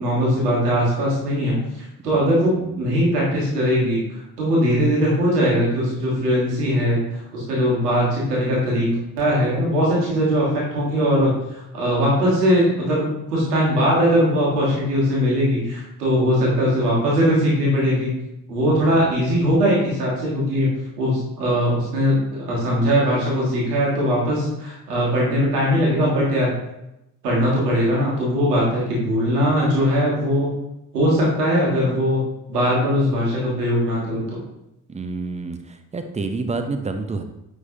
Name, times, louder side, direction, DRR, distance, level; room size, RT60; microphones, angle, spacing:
voice 1, 0.0-4.0 4.4-7.0 7.3-18.1 18.5-20.7 21.0-26.5 27.2-30.5 30.9-32.2 32.5-34.4, equal, 80° right, -4 dB, 1.7 m, -20 dB
voice 2, 2.1-2.5 18.9-19.5 34.9-37.2, right 3 dB, 15° right, 7 dB, 0.7 m, -29 dB
9.3 x 3.7 x 2.8 m, 0.87 s
figure-of-eight pair, 40°, 46 cm